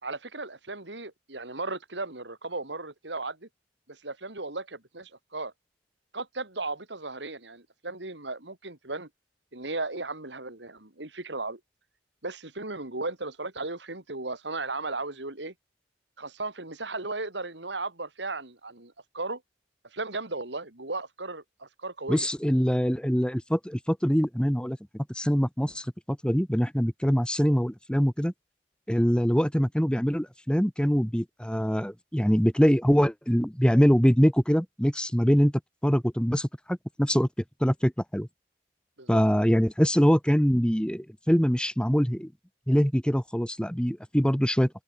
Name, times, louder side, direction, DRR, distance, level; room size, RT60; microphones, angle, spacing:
voice 1, 0.0-3.5 3.9-5.5 6.1-9.1 9.5-11.6 12.2-15.5 16.2-19.4 19.9-22.3 29.3-29.4 39.0-39.2, right 3 dB, 75° right, 3.9 m, -36 dB
voice 2, 22.1-28.3 28.9-35.5 35.8-37.3 37.6-38.3 39.1-42.3 42.7-44.7, equal, 5° left, 2.3 m, -24 dB
head